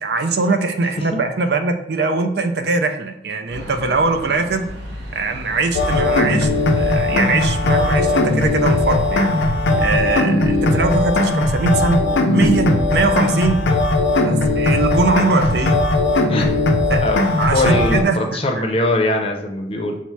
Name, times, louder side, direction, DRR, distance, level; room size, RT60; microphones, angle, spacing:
voice 1, 0.0-4.7 5.1-6.5 6.7-9.3 9.8-12.0 12.3-13.7 14.2-15.8 16.9-17.0 17.4-18.6, right 3 dB, 65° right, 6 dB, 0.4 m, -21 dB
sound 1, 3.5-10.1, equal, 90° right, 1.1 m, -36 dB
sound 2, 5.7-18.0, left 2 dB, 85° left, 0.5 m, -18 dB
voice 2, 17.5-20.0, left 1 dB, 30° left, 3 dB, 0.6 m, -21 dB
5.5 x 2.1 x 4.5 m, 0.82 s
head